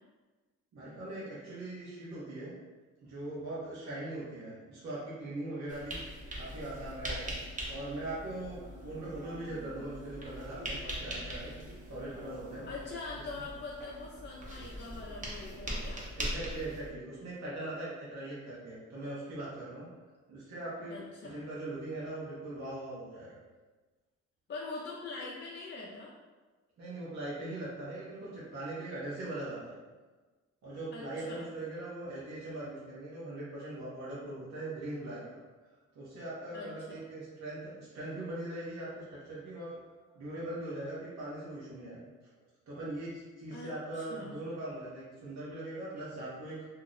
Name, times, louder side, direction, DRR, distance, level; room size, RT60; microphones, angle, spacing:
voice 1, 0.7-2.5 3.0-6.0 6.4-7.3 7.7-8.6 8.8-11.5 11.9-12.6 16.2-19.9 20.3-23.3 26.8-29.8 30.6-35.4 35.9-39.7 40.0-42.0 42.7-46.7, right 1 dB, 65° right, -8 dB, 1.0 m, -40 dB
sound 1, 5.7-16.9, right 1 dB, 25° right, 0.8 m, -41 dB
voice 2, 12.7-16.0 20.9-21.5 24.5-26.1 30.9-31.5 36.5-37.0 43.5-43.7 44.0-44.4, left 3 dB, 35° left, -4 dB, 0.5 m, -43 dB
2.8 x 2.0 x 3.8 m, 1.3 s
cardioid pair, 90°, 30 cm